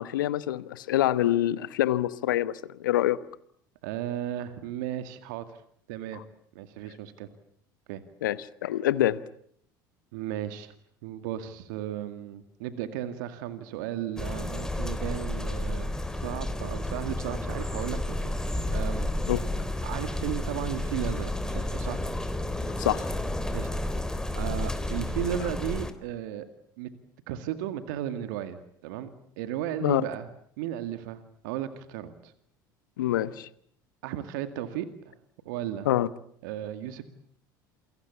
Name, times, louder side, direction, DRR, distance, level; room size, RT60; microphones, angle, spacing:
voice 1, 0.0-3.2 6.1-6.2 8.2-9.2 19.3-19.4 22.8-23.1 29.8-30.0 33.0-33.5 35.8-36.1, left 13 dB, 75° left, 1.1 m, -26 dB
voice 2, 3.8-5.6 5.9-6.2 6.5-7.3 7.9-8.0 10.1-10.7 11.0-18.3 18.7-19.1 19.8-22.0 23.5-23.7 24.3-26.5 26.8-26.9 27.3-29.1 29.4-30.3 30.6-32.3 34.0-35.1 35.4-35.9 36.4-37.0, right 11 dB, 70° right, 2.1 m, -35 dB
sound 1, 14.2-25.9, left 1 dB, 5° left, 3.5 m, -31 dB
28.5 x 23.0 x 8.3 m
hypercardioid pair, 70°, 11 cm